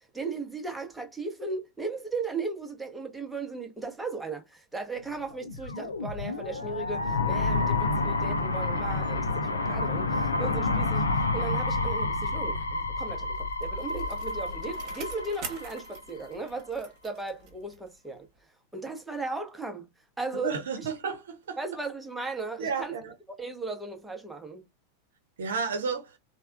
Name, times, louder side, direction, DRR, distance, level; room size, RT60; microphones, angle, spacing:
voice 1, 0.1-18.3 18.7-19.9 20.2-20.5 20.8-20.9 21.6-22.9 23.4-24.7, right 3 dB, 5° right, 0.8 m, -36 dB
sound 1, 5.3-16.3, left 3 dB, 75° left, 0.5 m, -29 dB
Bicycle, 13.1-18.0 18.3-18.4, right 6 dB, 40° right, 1.1 m, -46 dB
voice 2, 20.4-21.6 22.6-23.1 25.4-26.2, right 5 dB, 60° right, 0.8 m, -32 dB
3.3 x 2.2 x 2.3 m
figure-of-eight pair, 90°, 0 cm